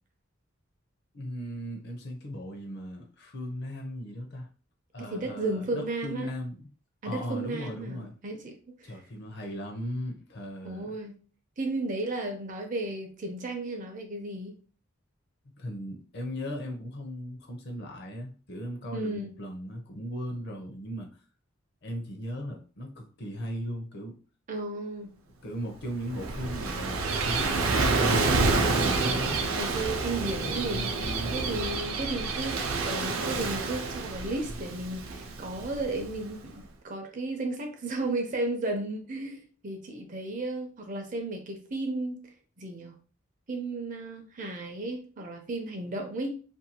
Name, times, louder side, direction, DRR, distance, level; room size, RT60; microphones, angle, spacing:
voice 1, 1.1-4.5 4.9-6.7 7.0-8.1 8.8-11.0 15.6-21.1 21.8-24.2 25.4-29.4 30.3-31.4, equal, 55° left, 0.6 m, -37 dB
voice 2, 5.0-6.3 7.0-8.9 10.6-11.2 11.6-14.6 18.9-19.3 24.5-25.1 29.5-30.9 31.3-42.2 42.6-42.9 43.5-46.3, right 2 dB, 40° right, 0.5 m, -34 dB
Gull seagull / Waves surf, 25.8-36.4, right 3 dB, 90° right, 0.5 m, -29 dB
2.6 x 2.3 x 2.8 m
head